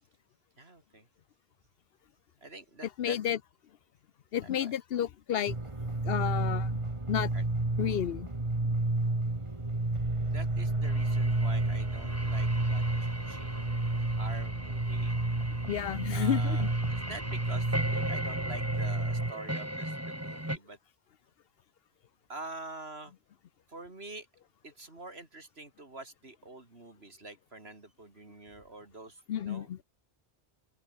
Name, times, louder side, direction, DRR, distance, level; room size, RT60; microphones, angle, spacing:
voice 1, 0.6-1.1 2.4-3.2 4.4-4.8 7.3-7.5 9.0-9.2 10.2-15.2 16.1-20.8 22.3-23.1 23.7-24.3 24.6-29.8, right 2 dB, 75° right, 4.2 m, -47 dB
voice 2, 3.0-3.4 4.3-5.5 6.0-6.7 7.1-7.3 7.8-8.3 15.7-16.7 29.3-29.8, left 10 dB, 70° left, 0.9 m, -31 dB
sound 1, 5.5-19.3, right 2 dB, 30° right, 2.2 m, -30 dB
sound 2, 10.8-20.6, right 1 dB, 15° right, 3.5 m, -39 dB
open air
omnidirectional pair, 1.1 m